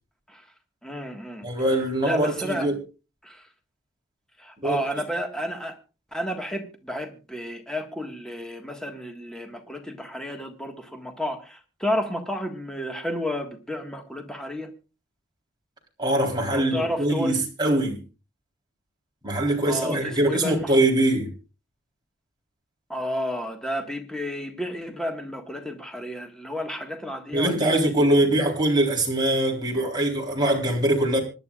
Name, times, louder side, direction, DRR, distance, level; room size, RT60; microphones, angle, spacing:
voice 1, 0.8-1.5 2.0-2.7 3.2-3.5 4.4-5.8 6.1-14.7 16.5-17.4 19.7-20.8 22.9-28.1, equal, 5° left, 1.6 m, -31 dB
voice 2, 1.4-2.7 4.6-4.8 16.0-18.0 19.2-21.3 27.3-31.2, right 1 dB, 20° right, 3.8 m, -22 dB
26.0 x 11.0 x 2.4 m
head